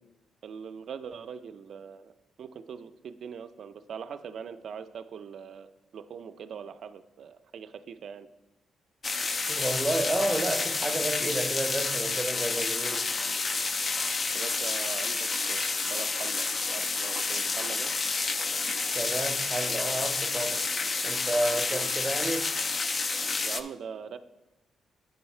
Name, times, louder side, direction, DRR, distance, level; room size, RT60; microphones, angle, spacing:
voice 1, 0.4-2.1 2.4-8.3 14.3-17.9 21.5-21.9 23.4-24.2, right 7 dB, 60° right, 10 dB, 0.4 m, -42 dB
sound 1, 9.0-23.6, left 4 dB, 35° left, 0.3 m, -29 dB
voice 2, 9.5-13.1 18.9-20.6 21.0-22.5, right 1 dB, 10° right, 6 dB, 0.6 m, -31 dB
7.9 x 5.5 x 4.3 m, 0.98 s
cardioid pair, 125°, 0 cm